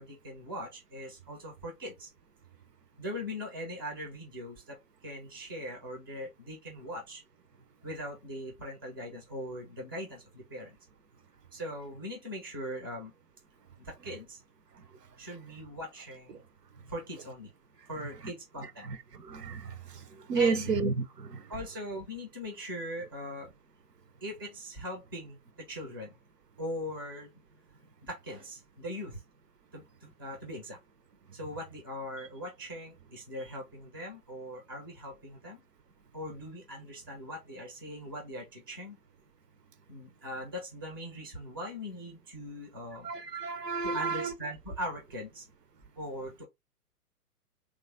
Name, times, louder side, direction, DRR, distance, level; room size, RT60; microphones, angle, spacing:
voice 1, 0.0-2.1 3.0-7.2 7.8-10.8 11.5-13.1 13.8-14.4 15.2-16.4 16.9-17.5 17.9-18.9 20.3-20.7 21.5-23.5 24.2-26.1 26.6-27.3 28.0-29.2 29.7-30.8 31.3-35.6 36.1-39.0 39.9-43.1 43.8-45.5 46.0-46.5, equal, 15° right, 0.4 m, -40 dB
voice 2, 18.9-21.4 43.0-44.3, right 4 dB, 85° right, 0.6 m, -32 dB
3.1 x 2.3 x 2.4 m
figure-of-eight pair, 120°, 47 cm